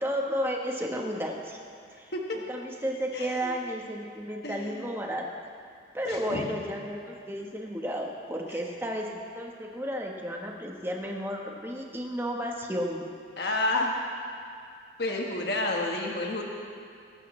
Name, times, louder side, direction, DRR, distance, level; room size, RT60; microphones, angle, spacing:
voice 1, 0.0-1.6 2.0-2.1 2.5-5.2 5.9-13.0, equal, 15° right, 0 dB, 1.1 m, -33 dB
voice 2, 3.1-3.6 4.4-4.8 6.0-6.5 13.4-14.0 15.0-16.4, left 2 dB, 60° left, 0 dB, 1.3 m, -30 dB
21.0 x 12.5 x 3.2 m, 2.4 s
head